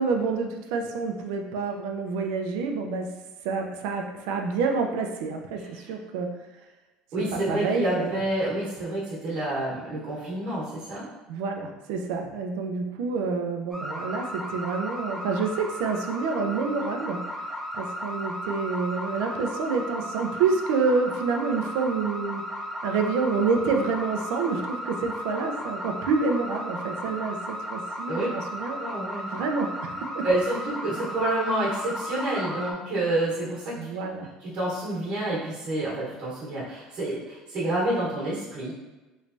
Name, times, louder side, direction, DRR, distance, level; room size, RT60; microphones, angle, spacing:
voice 1, 0.0-3.1 3.4-6.3 7.3-8.2 11.3-17.3 17.7-22.4 22.8-28.8 29.3-30.3 33.8-34.3, right 4 dB, 90° right, 4 dB, 0.4 m, -28 dB
voice 2, 7.1-11.1 28.1-28.3 28.8-29.4 30.2-34.1 34.4-38.7, right 1 dB, 50° right, -7 dB, 1.1 m, -28 dB
sound 1, 13.7-32.7, equal, ahead, 0.5 m, -35 dB
3.2 x 3.1 x 2.6 m, 1.2 s
cardioid pair, 160°, 2 cm